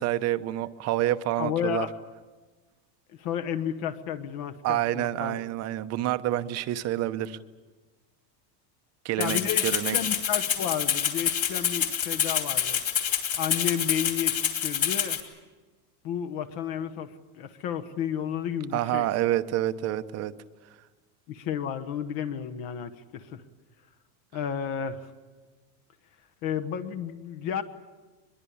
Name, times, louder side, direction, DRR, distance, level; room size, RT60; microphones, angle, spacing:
voice 1, 0.0-1.9 4.6-7.4 9.0-10.0 18.7-20.3, right 14 dB, 35° right, 11 dB, 0.9 m, -28 dB
voice 2, 1.4-1.9 3.2-5.4 9.2-12.8 13.3-15.2 16.0-17.1 17.3-19.1 21.3-23.4 24.3-25.1 26.4-27.6, left 9 dB, 45° left, 7 dB, 1.3 m, -32 dB
Rattle (instrument), 9.2-15.2, left 8 dB, 30° left, 2.9 m, -27 dB
23.5 x 22.0 x 8.6 m, 1.3 s
cardioid pair, 165°, 47 cm